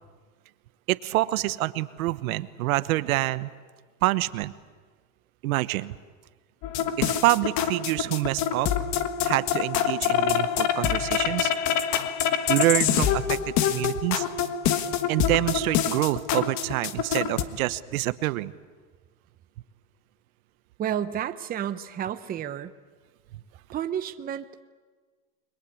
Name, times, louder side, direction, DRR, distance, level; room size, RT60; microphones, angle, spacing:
voice 1, 0.9-3.5 4.0-4.5 5.4-6.0 7.0-8.7 9.2-11.5 12.5-14.3 15.1-18.5, right 17 dB, 75° right, 14 dB, 1.1 m, -26 dB
sound 1, 6.6-17.4, left 9 dB, 40° left, 1.5 m, -26 dB
voice 2, 20.8-22.7 23.7-24.6, right 9 dB, 20° right, 10 dB, 0.8 m, -31 dB
30.0 x 22.0 x 8.6 m, 1.4 s
supercardioid pair, 150°, 43 cm